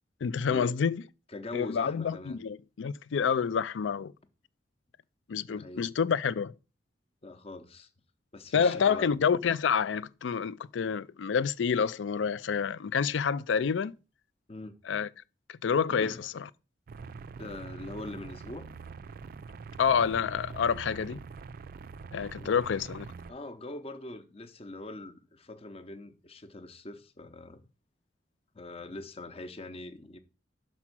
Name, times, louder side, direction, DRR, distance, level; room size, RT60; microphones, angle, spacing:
voice 1, 0.2-1.0 1.5-4.1 5.3-6.5 8.5-13.9 14.9-15.1 15.6-16.5 19.8-21.2 22.1-23.1, left 6 dB, 90° left, 0.4 m, -28 dB
voice 2, 1.3-2.4 5.5-5.9 7.2-7.9 8.3-9.1 14.5-14.8 15.9-16.3 17.4-18.7 22.3-22.6 23.3-27.6 28.5-30.2, left 2 dB, 35° left, 0.7 m, -42 dB
sound 1, 16.9-23.3, right 5 dB, 50° right, 0.4 m, -44 dB
6.0 x 4.3 x 6.0 m
head